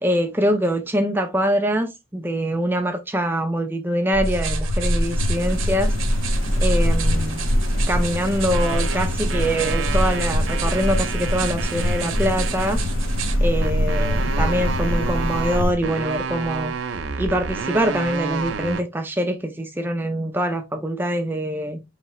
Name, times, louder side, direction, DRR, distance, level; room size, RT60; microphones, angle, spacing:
voice 1, 0.0-5.9 6.6-7.5 7.9-12.8 13.4-16.7 17.2-21.8, equal, 10° right, 0.5 m, -24 dB
sound 1, 4.1-15.7, equal, 70° left, 1.1 m, -23 dB
sound 2, 4.2-13.4, right 9 dB, 85° right, 0.9 m, -34 dB
sound 3, 8.4-12.8 13.6-18.8, right 5 dB, 65° right, 0.5 m, -30 dB
4.7 x 3.2 x 3.0 m
head